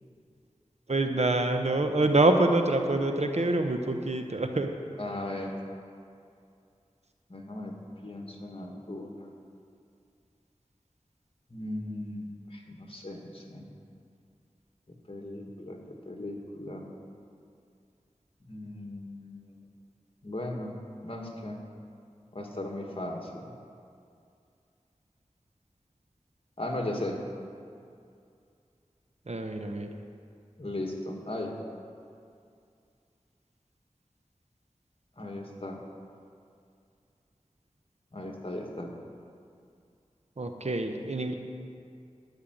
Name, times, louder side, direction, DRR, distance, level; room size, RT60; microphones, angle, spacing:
voice 1, 0.9-4.7 29.3-29.9 40.4-41.3, right 2 dB, 60° right, 5 dB, 1.0 m, -26 dB
voice 2, 5.0-5.5 7.3-7.7 8.0-9.3 11.5-13.7 15.1-15.8 16.1-16.9 18.5-19.7 20.2-20.8 21.0-21.6 22.3-23.5 26.6-27.2 30.6-31.5 35.2-35.8 38.1-38.9, left 1 dB, 50° left, 1 dB, 1.8 m, -37 dB
12.5 x 5.7 x 9.2 m, 2.4 s
wide cardioid pair, 40°, 12 cm